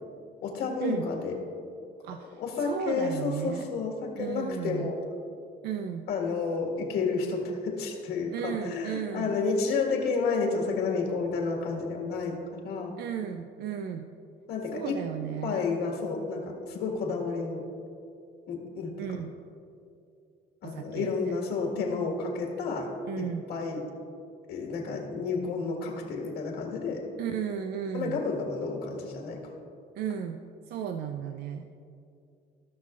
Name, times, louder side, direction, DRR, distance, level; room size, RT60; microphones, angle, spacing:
voice 1, 0.4-1.3 2.4-5.0 6.1-12.4 12.6-12.9 14.5-15.0 15.4-17.6 18.5-18.9 20.6-22.9 23.2-23.8 24.5-27.0 27.9-29.4, left 4 dB, 80° left, 0 dB, 1.7 m, -31 dB
voice 2, 2.0-3.7 4.2-4.9 5.6-6.1 8.3-9.3 13.0-14.1 14.7-15.6 19.0-19.3 20.6-21.4 23.1-23.4 27.2-28.2 30.0-30.4 30.7-31.7, right 8 dB, 70° right, 7 dB, 0.5 m, -34 dB
17.0 x 5.7 x 2.5 m, 2.5 s
cardioid pair, 110°, 17 cm